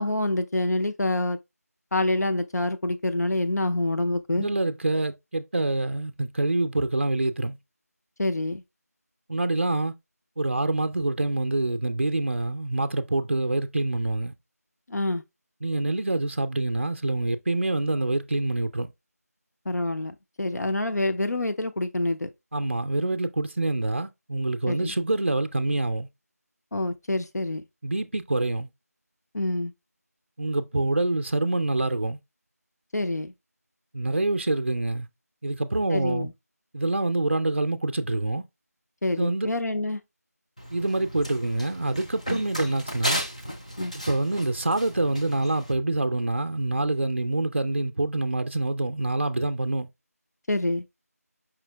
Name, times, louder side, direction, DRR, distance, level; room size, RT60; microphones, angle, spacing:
voice 1, 0.0-1.4 1.9-4.5 8.2-8.6 14.9-15.2 19.7-22.3 24.7-24.9 26.7-27.6 29.3-29.7 32.9-33.3 35.9-36.3 39.0-40.0 42.3-42.4 43.8-43.9 50.5-50.8, left 2 dB, 75° left, 0.7 m, -26 dB
voice 2, 4.3-7.6 9.3-9.9 10.4-14.3 15.6-18.9 22.5-26.1 27.8-28.7 30.4-32.2 33.9-35.1 35.4-36.3 36.7-38.4 39.2-39.5 40.7-43.2 43.9-49.9, right 2 dB, 45° right, 0.4 m, -26 dB
Run, 40.6-45.7, equal, 25° left, 0.4 m, -35 dB
5.0 x 2.7 x 3.3 m
figure-of-eight pair, 180°, 9 cm